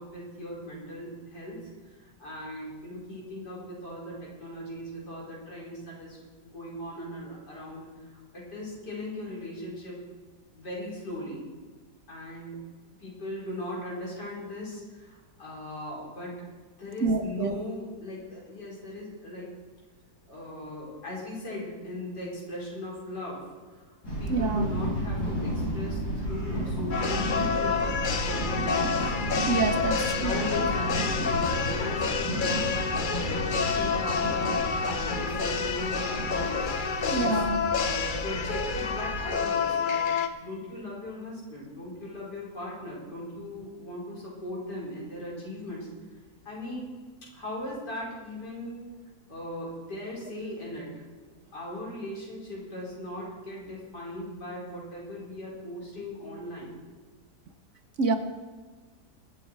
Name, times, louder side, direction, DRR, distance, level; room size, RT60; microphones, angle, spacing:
voice 1, 0.0-1.7 2.0-10.0 10.5-11.5 12.1-12.6 13.0-16.3 16.8-19.5 20.3-23.4 23.7-23.9 24.2-27.9 28.2-29.1 30.1-32.7 33.1-36.7 37.0-37.4 37.7-40.0 40.4-45.9 46.5-46.9 47.3-48.9 49.3-50.9 51.5-56.8, left 1 dB, 90° left, -5 dB, 5.4 m, -38 dB
voice 2, 17.0-17.5 24.3-24.7 29.5-30.4 37.1-37.6 58.0-58.2, right 4 dB, 50° right, 8 dB, 1.1 m, -27 dB
sound 1, 24.0-39.3, equal, 70° left, 5.7 m, -33 dB
sound 2, 26.9-40.3, left 5 dB, 45° left, 0.7 m, -29 dB
22.5 x 8.6 x 4.7 m, 1.4 s
omnidirectional pair, 1.7 m